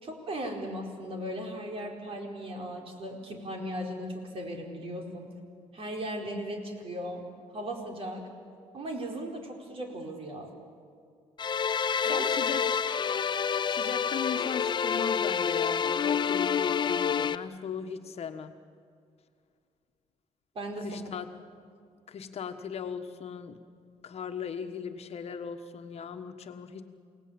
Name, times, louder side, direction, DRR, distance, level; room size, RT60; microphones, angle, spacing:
voice 1, 0.0-5.3 5.7-7.2 7.5-8.3 8.7-10.5 12.1-12.3 20.5-21.0, right 1 dB, 45° right, 2 dB, 4.6 m, -37 dB
sound 1, 11.4-17.4, left 7 dB, 35° left, 0.6 m, -28 dB
voice 2, 12.0-12.7 13.7-18.6 20.8-21.3 22.1-23.6 24.0-26.9, left 7 dB, 50° left, 7 dB, 1.4 m, -38 dB
28.5 x 18.5 x 8.9 m, 2.2 s
cardioid pair, 115°, 13 cm